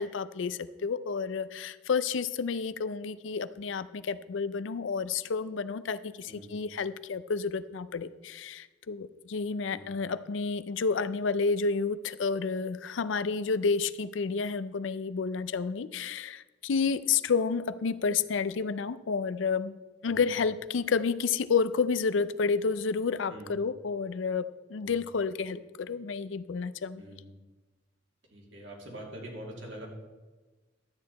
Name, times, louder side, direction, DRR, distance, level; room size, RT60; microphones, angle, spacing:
voice 1, 0.0-19.7 20.0-27.0, left 5 dB, 90° left, 14 dB, 0.5 m, -30 dB
voice 2, 6.2-6.6 9.7-9.9 20.1-20.3 23.3-23.6 24.8-25.0 26.9-27.4 28.3-29.9, right 1 dB, 80° right, -1 dB, 2.7 m, -45 dB
12.0 x 8.7 x 4.1 m, 1.2 s
head